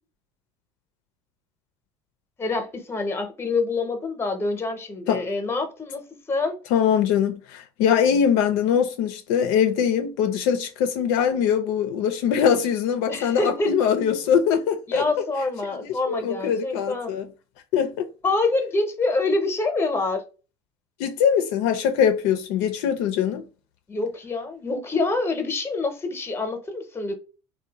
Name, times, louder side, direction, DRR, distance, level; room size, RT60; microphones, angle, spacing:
voice 1, 2.4-6.6 13.1-13.7 14.9-17.1 18.2-20.2 23.9-27.2, left 3 dB, 20° left, 0.8 m, -26 dB
voice 2, 6.7-15.0 16.1-17.3 17.7-18.1 21.0-23.4, left 8 dB, 75° left, 0.5 m, -22 dB
2.6 x 2.2 x 2.8 m
supercardioid pair, 100°, 13 cm